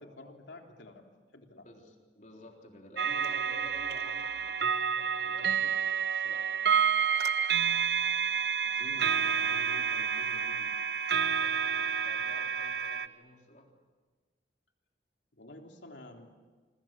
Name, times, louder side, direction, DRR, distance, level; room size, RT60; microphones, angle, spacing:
voice 1, 0.0-1.7 8.6-10.8 15.3-16.3, left 1 dB, 90° left, 3 dB, 3.5 m, -50 dB
voice 2, 1.6-6.5 11.2-13.7, left 1 dB, 45° left, 2 dB, 3.7 m, -52 dB
sound 1, 3.0-13.1, right 7 dB, 65° right, 0.9 m, -29 dB
27.0 x 25.0 x 7.6 m, 1.4 s
head